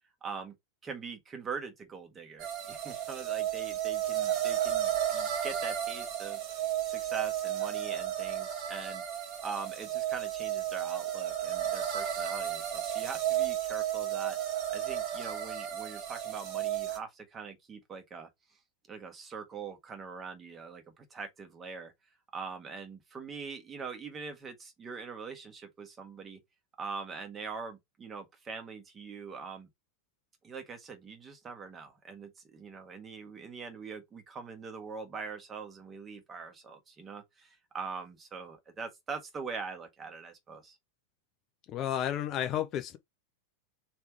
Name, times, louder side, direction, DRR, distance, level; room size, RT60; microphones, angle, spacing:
voice 1, 0.2-0.5 0.8-9.0 9.4-14.4 14.7-18.3 18.9-21.9 22.3-26.4 26.8-29.7 30.4-40.8, right 5 dB, 20° right, 1.5 m, -43 dB
sound 1, 2.4-17.0, right 11 dB, 40° right, 1.2 m, -33 dB
voice 2, 41.7-43.0, left 10 dB, 35° left, 0.6 m, -32 dB
3.4 x 3.2 x 4.6 m
figure-of-eight pair, 90°, 0 cm